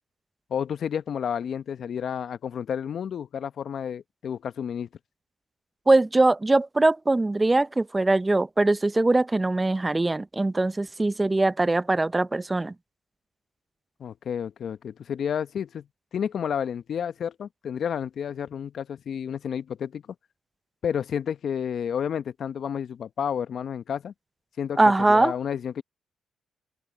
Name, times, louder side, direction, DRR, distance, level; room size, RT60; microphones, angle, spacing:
voice 1, 0.5-4.9 14.0-15.9 16.1-20.0 20.8-24.1 24.6-24.8 25.1-25.8, left 8 dB, 65° left, 0.9 m, -30 dB
voice 2, 5.9-12.7 24.8-25.3, right 2 dB, 20° right, 0.7 m, -22 dB
open air
supercardioid pair, 55°, 0 cm